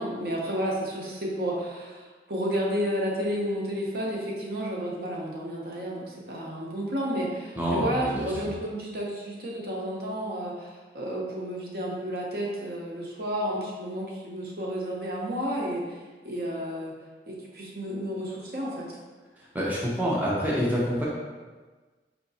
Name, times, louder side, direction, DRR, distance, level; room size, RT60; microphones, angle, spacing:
voice 1, 0.0-16.0 16.2-16.9 17.3-19.0, equal, 60° right, -3 dB, 0.8 m, -31 dB
voice 2, 7.5-8.3 19.4-21.0, equal, 10° right, -5 dB, 0.5 m, -27 dB
4.7 x 2.9 x 2.7 m, 1.3 s
head